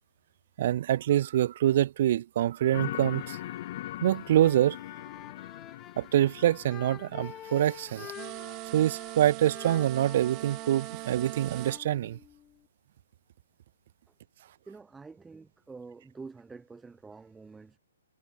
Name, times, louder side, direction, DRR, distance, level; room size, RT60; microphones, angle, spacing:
voice 1, 0.6-3.4 4.0-4.8 6.0-8.1 8.7-12.2, right 12 dB, 50° right, 0.4 m, -25 dB
sound 1, 2.7-8.2, left 14 dB, 45° left, 3.8 m, -41 dB
sound 2, 2.9-12.7, left 10 dB, 15° left, 1.5 m, -49 dB
sound 3, 8.1-11.8, right 25 dB, 30° right, 3.7 m, -40 dB
voice 2, 14.7-17.8, right 4 dB, 5° right, 4.1 m, -47 dB
hypercardioid pair, 145°, 0 cm